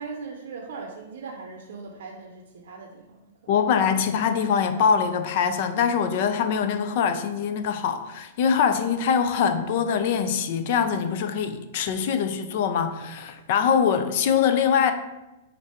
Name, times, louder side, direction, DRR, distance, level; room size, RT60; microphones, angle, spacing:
voice 1, 0.0-3.5, right 4 dB, 70° right, 0.6 m, -39 dB
voice 2, 3.5-14.9, left 7 dB, 55° left, 0.4 m, -23 dB
4.4 x 2.6 x 4.2 m
hypercardioid pair, 140°, 0 cm